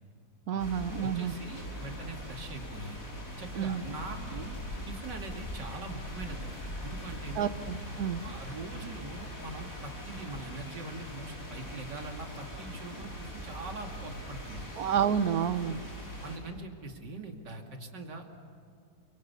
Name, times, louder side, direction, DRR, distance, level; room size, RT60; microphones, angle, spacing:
voice 1, 0.5-1.3 3.5-3.8 7.4-8.2 14.7-15.8, right 8 dB, 60° right, 13 dB, 1.4 m, -29 dB
sound 1, 0.6-16.4, equal, 50° left, 5.8 m, -41 dB
voice 2, 1.0-3.0 3.4-4.6 4.9-7.5 8.2-14.7 16.2-18.4, right 3 dB, 85° right, 3 dB, 3.1 m, -42 dB
29.0 x 25.0 x 7.1 m, 2.4 s
omnidirectional pair, 1.8 m